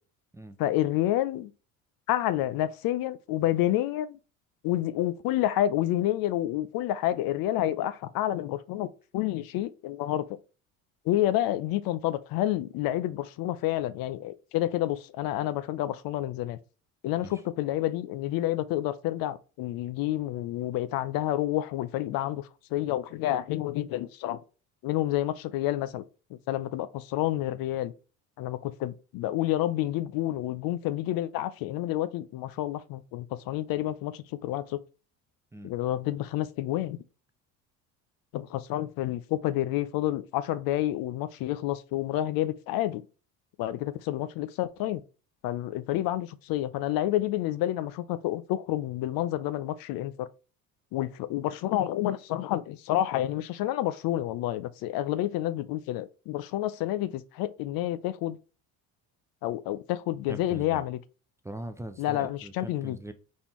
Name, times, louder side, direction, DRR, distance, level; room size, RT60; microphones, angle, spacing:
voice 1, 0.6-1.5 2.1-4.2 4.6-10.3 11.1-16.6 17.0-24.4 24.8-26.0 26.3-27.9 28.4-34.8 35.6-37.0 38.3-43.0 43.6-45.0 45.4-50.3 50.9-58.4 59.4-61.0 62.0-63.0, left 14 dB, 65° left, 0.5 m, -29 dB
voice 2, 60.3-60.8 61.4-63.1, right 1 dB, 10° right, 0.4 m, -41 dB
4.3 x 3.5 x 3.0 m
supercardioid pair, 90°, 38 cm